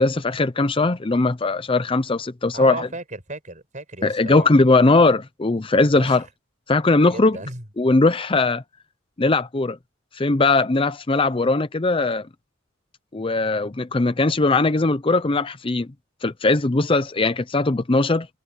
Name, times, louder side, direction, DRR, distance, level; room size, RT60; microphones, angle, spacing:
voice 1, 0.0-2.9 4.0-6.2 6.7-7.4 7.8-8.6 9.2-9.8 10.1-12.3 13.1-15.9 16.2-18.3, left 3 dB, 25° left, 0.6 m, -19 dB
voice 2, 2.5-4.5 6.0-6.2 7.1-7.6, right 2 dB, 40° right, 6.1 m, -35 dB
head